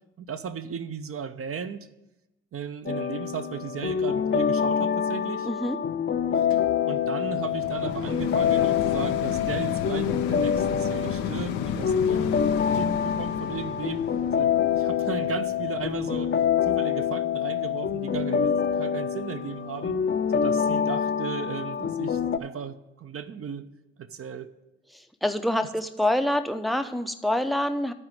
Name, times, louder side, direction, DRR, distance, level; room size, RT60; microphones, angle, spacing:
voice 1, 0.2-1.9 2.5-5.5 6.3-6.5 6.9-14.0 14.3-16.4 16.6-19.9 20.3-23.6 24.0-24.5, right 7 dB, 40° right, 11 dB, 0.8 m, -36 dB
sound 1, 2.9-22.4, left 7 dB, 30° left, 0.8 m, -26 dB
voice 2, 5.4-5.8 24.9-27.9, left 1 dB, ahead, 7 dB, 0.7 m, -26 dB
sound 2, 6.5-17.8 18.4-18.5, left 9 dB, 70° left, 0.7 m, -35 dB
11.0 x 4.8 x 7.5 m, 0.96 s
hypercardioid pair, 50°, 36 cm